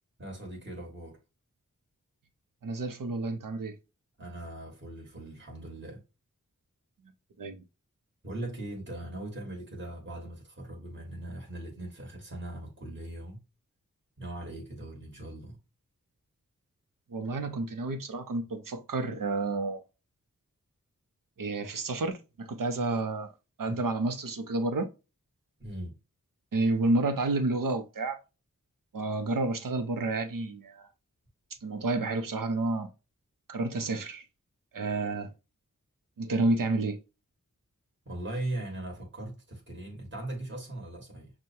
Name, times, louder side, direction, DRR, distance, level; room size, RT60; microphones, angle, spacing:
voice 1, 0.2-1.2 4.2-6.0 8.2-13.4 14.2-15.6 23.7-23.8 25.6-26.0 38.0-41.3, right 1 dB, 35° right, 1.4 m, -39 dB
voice 2, 2.6-3.8 7.4-7.6 17.1-19.8 21.4-23.3 23.6-24.9 26.5-28.2 28.9-30.9 31.6-32.9 33.5-34.2 34.7-35.3 36.2-37.0, right 2 dB, 85° right, 0.7 m, -30 dB
6.1 x 2.2 x 2.7 m
wide cardioid pair, 55°, 32 cm